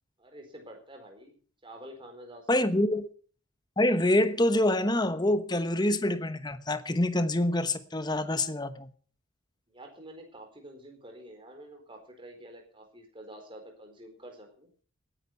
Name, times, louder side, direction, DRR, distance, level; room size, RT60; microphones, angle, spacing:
voice 1, 0.2-1.4 1.6-2.8 9.7-14.7, right 1 dB, 25° right, 4.3 m, -48 dB
voice 2, 2.5-3.1 3.8-8.9, left 1 dB, 20° left, 1.0 m, -26 dB
18.0 x 10.0 x 5.8 m
head